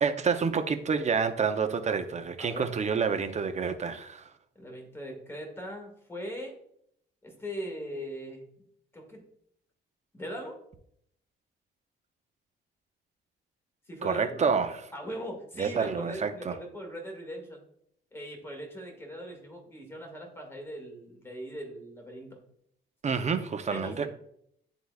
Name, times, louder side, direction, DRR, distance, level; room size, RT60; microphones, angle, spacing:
voice 1, 0.0-4.3 14.0-14.9 15.6-16.6 23.0-24.1, right 5 dB, 35° right, 0.7 m, -28 dB
voice 2, 2.4-2.7 4.6-6.6 7.2-8.4 8.9-9.2 10.1-10.6 13.9-14.5 14.9-17.6 18.1-22.4 23.7-24.1, equal, 10° left, 2.0 m, -40 dB
11.0 x 3.9 x 2.4 m
cardioid pair, 90°, 20 cm